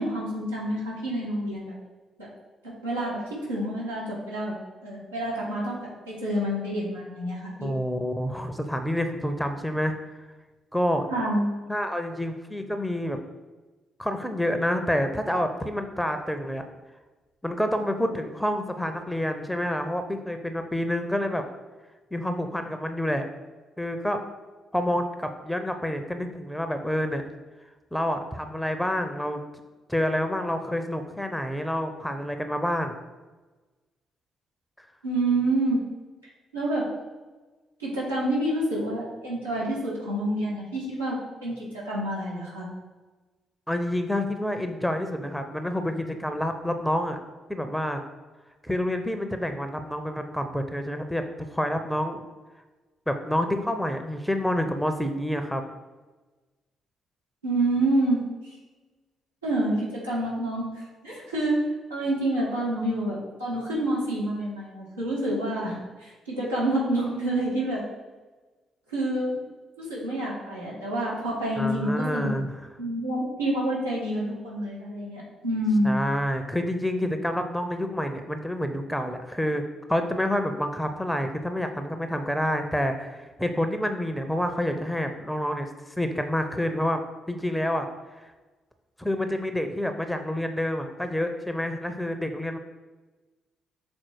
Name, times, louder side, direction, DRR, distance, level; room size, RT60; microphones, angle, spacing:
voice 1, 0.0-1.7 2.6-3.2 3.5-4.6 4.8-5.8 6.1-7.7 11.1-11.4 35.0-35.8 36.5-36.9 37.8-42.7 57.4-58.6 59.4-61.6 61.9-67.8 68.9-69.4 69.8-72.3 72.8-75.9, right 1 dB, 85° right, -10 dB, 1.9 m, -28 dB
voice 2, 7.6-10.0 10.7-11.1 11.7-13.2 14.0-16.6 17.4-21.4 22.1-23.2 23.8-24.2 24.7-27.2 27.9-29.4 29.9-33.0 43.7-47.2 47.5-48.0 48.6-51.2 51.5-52.2 53.1-55.6 71.6-72.5 75.8-79.6 79.9-87.0 87.3-87.9 88.2-88.3 89.0-92.6, left 1 dB, 5° left, 7 dB, 0.7 m, -28 dB
6.3 x 4.2 x 4.6 m, 1.2 s
figure-of-eight pair, 40°, 0 cm